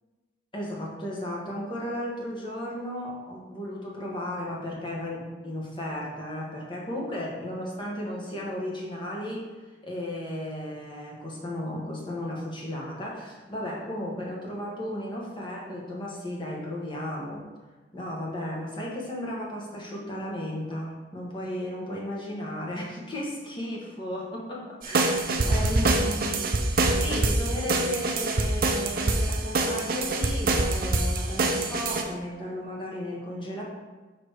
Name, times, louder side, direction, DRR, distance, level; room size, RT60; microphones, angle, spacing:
voice 1, 0.5-9.5 9.8-17.4 17.9-33.6, left 1 dB, 25° left, -3 dB, 1.2 m, -34 dB
sound 1, 24.8-32.0, right 2 dB, 50° right, 0.6 m, -25 dB
6.4 x 3.1 x 4.7 m, 1.3 s
head